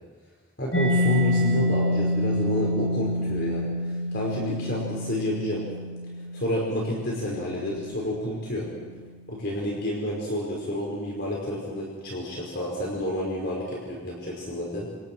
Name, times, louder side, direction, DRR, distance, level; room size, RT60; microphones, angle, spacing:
voice 1, 0.6-3.7 4.1-5.7 6.3-8.7 9.3-14.9, left 1 dB, 50° left, -3 dB, 5.0 m, -29 dB
Mallet percussion, 0.7-8.2, left 1 dB, 65° left, 6.5 m, -27 dB
29.0 x 27.0 x 4.7 m, 1.4 s
head